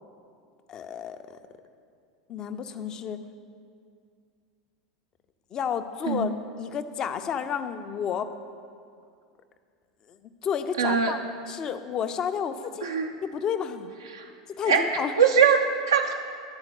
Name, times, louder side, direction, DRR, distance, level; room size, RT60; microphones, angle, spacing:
voice 1, 0.7-1.2 2.3-3.2 5.5-6.3 6.6-8.3 10.4-11.2 11.5-12.9 13.2-13.9 14.6-15.1, left 7 dB, 35° left, 10 dB, 0.5 m, -31 dB
voice 2, 10.8-11.1 12.8-13.1 14.1-14.3 14.7-14.8 15.2-16.1, right 6 dB, 75° right, 2 dB, 0.5 m, -22 dB
11.0 x 4.4 x 6.6 m, 2.3 s
figure-of-eight pair, 80°, 2 cm